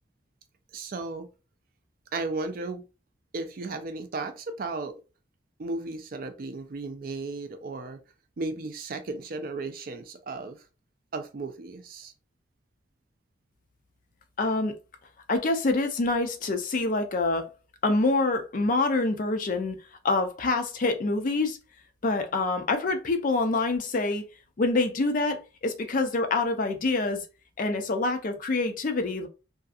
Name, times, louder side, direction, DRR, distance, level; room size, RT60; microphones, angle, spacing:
voice 1, 0.7-1.3 2.1-2.8 3.3-5.0 5.6-8.0 8.4-10.6 11.1-12.1, right 3 dB, 45° right, 0.4 m, -35 dB
voice 2, 14.4-14.8 15.3-17.5 17.8-19.8 20.0-21.6 22.0-24.2 24.6-27.2 27.6-29.3, left 3 dB, 45° left, 0.4 m, -26 dB
2.6 x 2.4 x 2.4 m
head